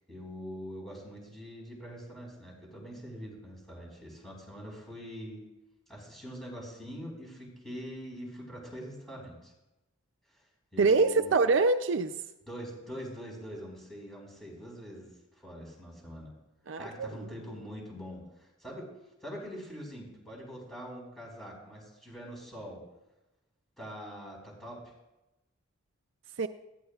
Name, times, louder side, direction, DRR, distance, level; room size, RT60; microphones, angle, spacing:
voice 1, 0.1-5.4 5.9-9.5 10.7-11.3 12.5-16.3 16.8-18.9 19.2-22.8 23.8-24.9, equal, ahead, -3 dB, 4.7 m, -43 dB
voice 2, 10.8-12.1 16.7-17.3 26.4-26.5, right 4 dB, 65° right, 9 dB, 0.5 m, -25 dB
19.0 x 15.0 x 2.4 m, 0.97 s
head